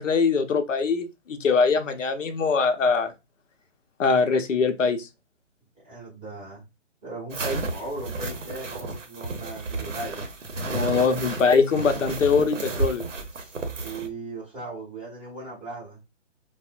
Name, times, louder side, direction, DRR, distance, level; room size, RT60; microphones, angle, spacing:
voice 1, 0.0-3.1 4.0-5.1 10.7-13.0, left 5 dB, 85° left, 0.6 m, -22 dB
voice 2, 5.8-6.7 7.0-10.2 13.3-16.0, right 2 dB, 10° right, 0.5 m, -37 dB
sound 1, 7.3-14.1, right 3 dB, 90° right, 0.8 m, -32 dB
3.5 x 2.1 x 2.4 m
hypercardioid pair, 150°, 37 cm